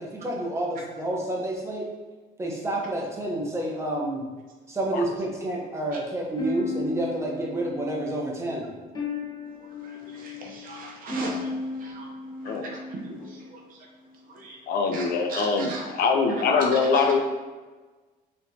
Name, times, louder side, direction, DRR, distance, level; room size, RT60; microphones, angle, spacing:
voice 1, 0.0-1.9 2.4-4.2 4.7-8.7, right 1 dB, 15° right, -1 dB, 0.8 m, -29 dB
sound 1, 6.4-13.5, left 2 dB, 25° left, 1.1 m, -35 dB
voice 2, 9.8-11.5 11.8-12.1 12.4-12.6 13.5-13.6 14.3-14.6 14.9-15.0 15.3-15.8 16.9-17.1, right 2 dB, 55° right, 0 dB, 0.8 m, -38 dB
voice 3, 14.7-17.2, left 4 dB, 65° left, 4 dB, 0.5 m, -23 dB
4.3 x 3.0 x 2.8 m, 1.3 s
cardioid pair, 110°, 17 cm